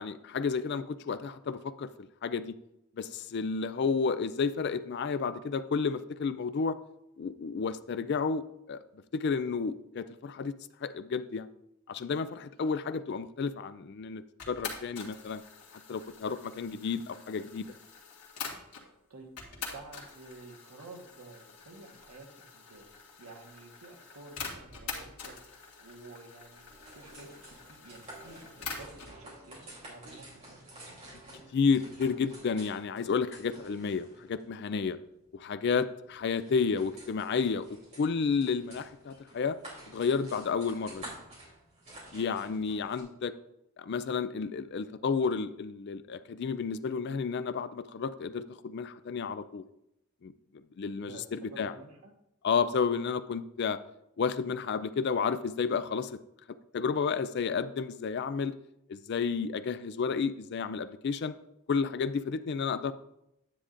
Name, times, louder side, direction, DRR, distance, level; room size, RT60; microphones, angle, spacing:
voice 1, 0.0-2.6 3.0-6.8 7.2-8.8 9.1-10.5 10.8-11.5 11.9-15.4 15.9-17.7 31.5-35.0 35.3-39.6 39.9-41.0 42.1-43.3 43.8-49.6 50.2-51.7 52.4-53.8 54.2-56.2 56.7-58.5 58.9-61.3 61.7-62.9, left 5 dB, 50° left, 13 dB, 0.3 m, -31 dB
sound 1, 14.4-18.9 19.4-29.2, left 5 dB, 90° left, 1.7 m, -45 dB
voice 2, 19.1-22.3 22.5-29.6 29.8-30.6 42.7-42.9 50.9-52.1, right 2 dB, 85° right, 2 dB, 1.3 m, -51 dB
sound 2, 26.5-43.0, right 1 dB, 30° right, 3.1 m, -51 dB
9.6 x 8.4 x 2.5 m, 0.82 s
head